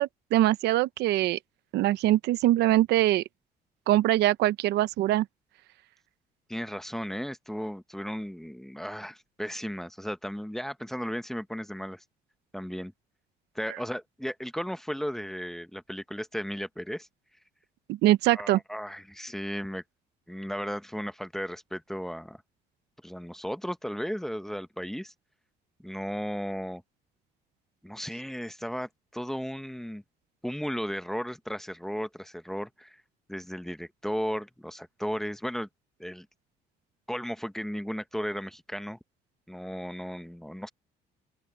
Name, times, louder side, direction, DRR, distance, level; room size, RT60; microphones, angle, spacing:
voice 1, 0.0-1.4 1.7-3.2 3.9-5.2 17.9-18.6, right 15 dB, 80° right, 0.9 m, -23 dB
voice 2, 6.5-12.0 12.5-12.9 13.5-17.1 18.3-19.8 20.3-22.4 23.0-25.1 25.8-26.8 27.8-30.0 30.4-33.0 33.3-35.7 36.0-36.3 37.1-39.0 39.5-40.7, equal, ahead, 1.0 m, -35 dB
open air
cardioid pair, 110°, 17 cm